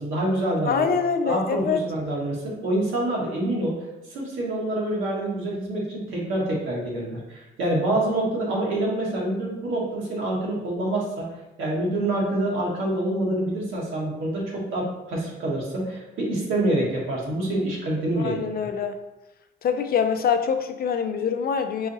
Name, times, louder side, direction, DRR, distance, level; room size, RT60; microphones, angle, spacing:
voice 1, 0.0-0.9 1.2-3.8 4.1-11.3 11.6-18.7, right 1 dB, 85° right, -4 dB, 1.5 m, -26 dB
voice 2, 0.7-1.8 18.2-19.0 19.6-21.9, left 6 dB, 50° left, 7 dB, 0.5 m, -24 dB
4.8 x 2.5 x 4.0 m, 1.0 s
cardioid pair, 90°, 20 cm